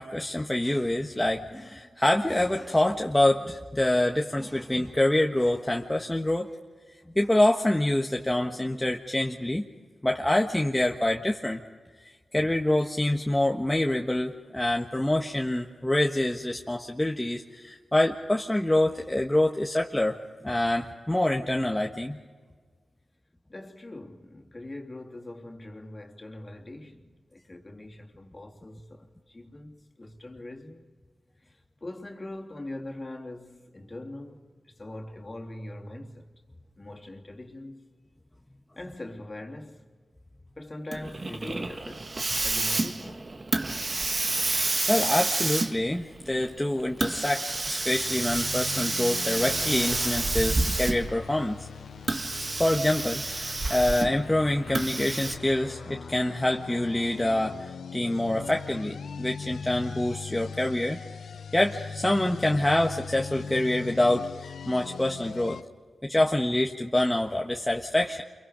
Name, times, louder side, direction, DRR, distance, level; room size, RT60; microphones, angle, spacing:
voice 1, 0.0-6.5 7.1-9.6 10.0-11.6 12.3-22.2 44.9-51.7 52.6-61.0 61.5-65.6 66.0-68.2, left 1 dB, 15° left, 1.5 m, -26 dB
voice 2, 23.5-30.8 31.4-36.3 36.8-37.8 38.8-39.9 40.6-42.1 42.4-43.3, left 1 dB, 35° left, 3.1 m, -42 dB
Hiss, 40.9-51.2 52.0-54.2 54.7-55.4, right 2 dB, 45° right, 1.6 m, -29 dB
sound 1, 47.8-65.6, left 6 dB, 80° left, 0.7 m, -40 dB
28.5 x 23.5 x 5.2 m
cardioid pair, 45°, 0 cm